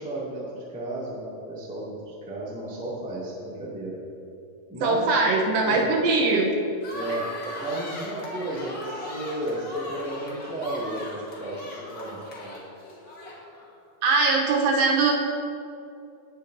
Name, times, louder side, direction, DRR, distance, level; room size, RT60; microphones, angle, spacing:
voice 1, 0.0-4.0 4.7-5.1 5.6-5.8 6.9-7.2 7.6-12.5, right 1 dB, 5° right, -7 dB, 0.9 m, -33 dB
voice 2, 4.8-6.6 14.0-15.1, right 3 dB, 75° right, 0 dB, 2.5 m, -21 dB
sound 1, 6.8-13.7, left 1 dB, 50° left, 1.0 m, -38 dB
18.0 x 7.0 x 2.7 m, 2.6 s
omnidirectional pair, 4.3 m